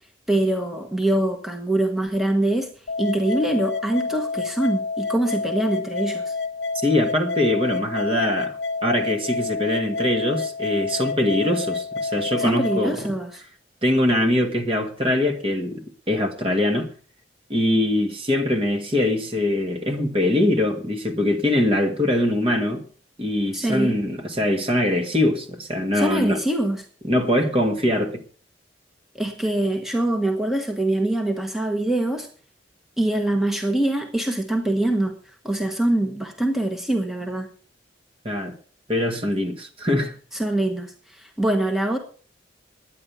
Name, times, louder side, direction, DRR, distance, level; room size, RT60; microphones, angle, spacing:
voice 1, 0.3-2.7 3.0-6.3 12.4-13.4 23.5-23.9 25.9-26.8 29.2-32.3 33.0-35.2 35.4-37.5 40.3-42.0, right 1 dB, ahead, 1.3 m, -24 dB
sound 1, 2.9-12.9, left 4 dB, 70° left, 0.8 m, -29 dB
voice 2, 6.7-13.1 13.8-16.9 17.5-22.9 23.2-26.4 27.0-28.2 38.2-38.5 38.9-40.1, left 1 dB, 30° right, 1.7 m, -22 dB
11.0 x 9.7 x 6.9 m
head